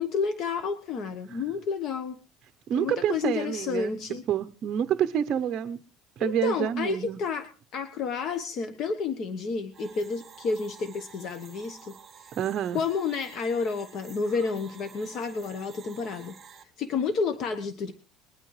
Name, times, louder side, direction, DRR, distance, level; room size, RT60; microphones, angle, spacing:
voice 1, 0.0-2.2 2.8-4.2 6.2-7.5 7.7-12.3 12.7-17.9, left 5 dB, 50° left, 1.1 m, -30 dB
voice 2, 2.7-3.9 4.3-5.8 6.2-7.2 12.3-12.8, right 9 dB, 45° right, 0.6 m, -28 dB
sound 1, 9.7-16.6, right 7 dB, 30° right, 1.9 m, -51 dB
20.5 x 12.0 x 3.2 m
cardioid pair, 125°, 0 cm